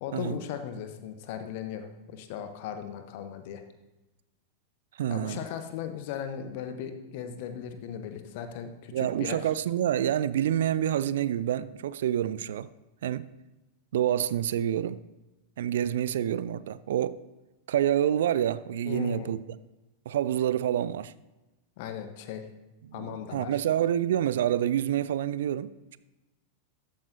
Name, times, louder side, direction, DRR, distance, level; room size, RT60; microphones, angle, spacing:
voice 1, 0.0-3.6 5.1-9.4 18.9-19.3 21.8-22.4 22.9-23.6, left 8 dB, 50° left, 1.0 m, -37 dB
voice 2, 5.0-5.4 8.9-12.7 13.0-13.3 13.9-15.0 15.6-17.2 17.7-19.4 20.1-21.1 22.9-23.1 23.3-26.0, right 10 dB, 60° right, 0.3 m, -27 dB
13.0 x 9.0 x 2.7 m
figure-of-eight pair, 90°, 0 cm